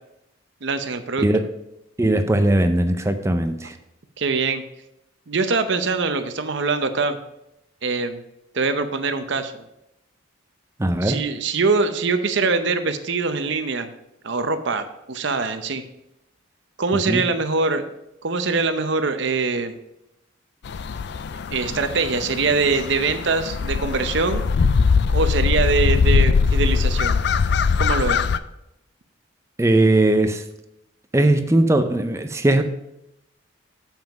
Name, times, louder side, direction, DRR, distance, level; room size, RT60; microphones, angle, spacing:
voice 1, 0.6-1.3 4.2-4.6 5.3-7.2 7.8-8.2 8.5-9.6 11.0-13.9 14.2-15.8 16.8-17.9 18.2-19.8 21.5-24.4 25.1-27.2 27.8-28.2, right 4 dB, 55° right, 9 dB, 0.7 m, -23 dB
voice 2, 2.0-3.7 10.8-11.2 17.1-17.2 29.6-30.4 31.1-32.6, right 1 dB, 15° right, 7 dB, 0.5 m, -19 dB
sound 1, 20.7-28.4, left 5 dB, 50° left, 0.3 m, -21 dB
7.2 x 5.9 x 5.1 m, 0.85 s
head